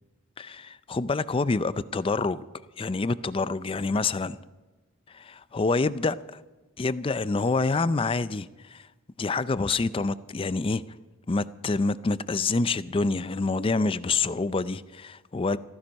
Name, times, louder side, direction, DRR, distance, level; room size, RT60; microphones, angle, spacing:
voice 1, 0.4-2.4 2.8-4.4 5.1-6.2 6.8-8.9 9.2-10.8 11.3-15.6, left 3 dB, 25° left, 0.4 m, -27 dB
15.5 x 15.0 x 5.3 m
head